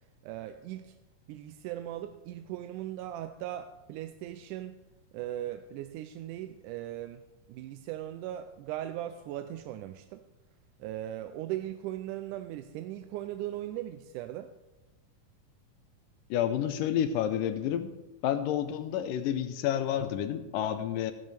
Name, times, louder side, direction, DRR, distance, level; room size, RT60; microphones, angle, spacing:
voice 1, 0.2-1.0 1.3-4.8 5.1-7.2 7.5-10.2 10.8-14.5, right 13 dB, 80° right, 8 dB, 2.0 m, -38 dB
voice 2, 16.3-17.9 18.2-21.1, left 10 dB, 85° left, 10 dB, 2.4 m, -29 dB
14.5 x 11.0 x 3.4 m, 1.0 s
omnidirectional pair, 3.8 m